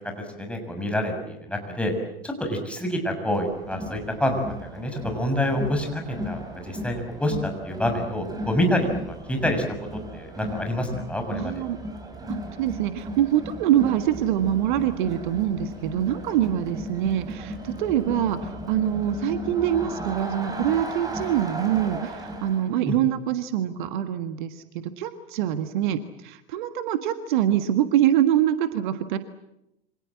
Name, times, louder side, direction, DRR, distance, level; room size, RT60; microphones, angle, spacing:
voice 1, 0.2-1.9 2.2-9.6 10.1-11.6 22.9-23.0, left 1 dB, 5° left, 4 dB, 6.5 m, -27 dB
Crowd, 3.3-22.7, equal, 15° right, 6.4 m, -36 dB
voice 2, 11.3-11.8 12.3-29.2, right 11 dB, 55° right, 10 dB, 1.6 m, -24 dB
28.0 x 25.5 x 7.7 m, 0.87 s
figure-of-eight pair, 85°, 29 cm